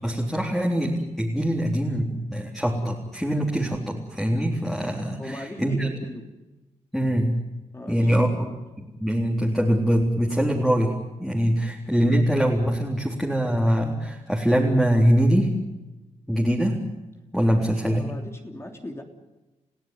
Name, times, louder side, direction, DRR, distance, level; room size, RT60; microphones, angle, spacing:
voice 1, 0.0-5.9 6.9-7.4 7.9-8.4 8.8-15.5 16.3-16.8 17.3-18.0, equal, ahead, -2 dB, 3.8 m, -23 dB
voice 2, 5.2-6.4 7.7-8.6 11.5-11.7 17.4-19.0, left 1 dB, 20° left, 3 dB, 3.2 m, -38 dB
30.0 x 16.0 x 9.4 m, 1.1 s
cardioid pair, 90°, 12 cm